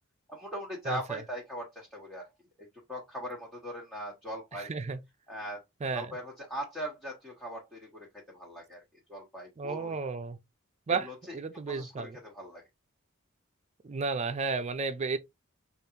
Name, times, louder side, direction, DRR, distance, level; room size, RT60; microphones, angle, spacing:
voice 1, 0.3-2.3 2.6-4.7 5.3-5.6 5.9-8.1 8.3-8.8 9.1-10.0 10.9-11.4 11.7-12.6, equal, 5° left, 1.2 m, -40 dB
voice 2, 0.9-1.2 4.5-5.0 5.8-6.1 9.6-10.4 10.9-12.2 13.8-15.2, right 4 dB, 35° right, 0.4 m, -33 dB
5.0 x 2.5 x 2.8 m
head